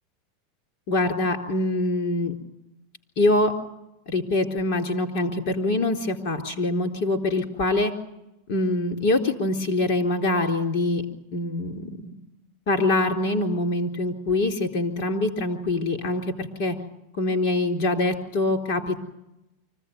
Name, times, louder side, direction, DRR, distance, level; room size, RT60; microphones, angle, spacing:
voice 1, 0.9-2.3 3.2-3.5 4.1-7.9 8.5-11.0 11.3-12.1 12.7-16.8 17.2-19.0, left 2 dB, 55° left, 4 dB, 3.9 m, -24 dB
24.5 x 16.0 x 9.5 m, 0.90 s
supercardioid pair, 155°, 0 cm